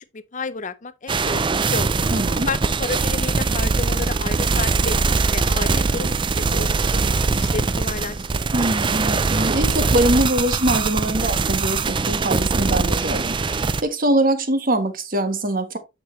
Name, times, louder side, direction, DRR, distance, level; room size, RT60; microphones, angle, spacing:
voice 1, 0.1-1.4 1.7-1.9 2.5-8.5, left 4 dB, 40° left, 0.6 m, -31 dB
sound 1, 1.1-13.8, right 4 dB, 25° right, 0.4 m, -22 dB
voice 2, 2.1-2.5 8.5-15.8, right 1 dB, 45° right, 1.4 m, -23 dB
9.3 x 6.5 x 3.1 m
head